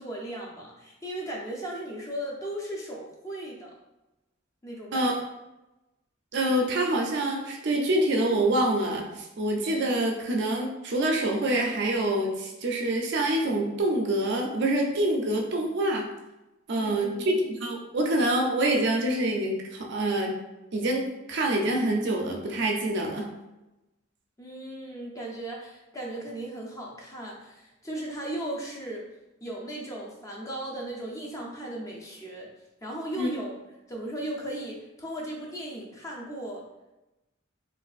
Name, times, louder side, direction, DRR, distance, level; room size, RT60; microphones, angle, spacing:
voice 1, 0.0-3.7 4.6-5.1 16.8-17.4 24.4-29.0 29.4-32.5 32.8-33.6 33.9-36.6, right 1 dB, 15° left, -2 dB, 0.5 m, -36 dB
voice 2, 6.3-16.1 16.7-20.3 20.7-23.3 33.2-33.3, right 1 dB, 60° right, 1 dB, 0.5 m, -26 dB
3.2 x 2.4 x 2.4 m, 0.97 s
head